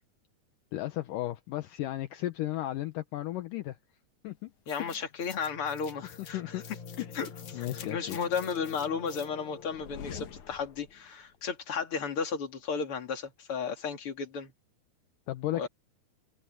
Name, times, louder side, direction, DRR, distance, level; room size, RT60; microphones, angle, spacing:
voice 1, 0.7-3.8 4.2-4.5 4.8-5.1 6.3-6.6 7.0-7.1 7.5-8.2 15.3-15.7, left 14 dB, 70° left, 2.2 m, -34 dB
sound 1, 4.7-11.0, left 7 dB, 55° left, 2.7 m, -45 dB
voice 2, 4.7-6.4 7.1-14.5 15.5-15.7, left 6 dB, 35° left, 3.1 m, -34 dB
omnidirectional pair, 4.7 m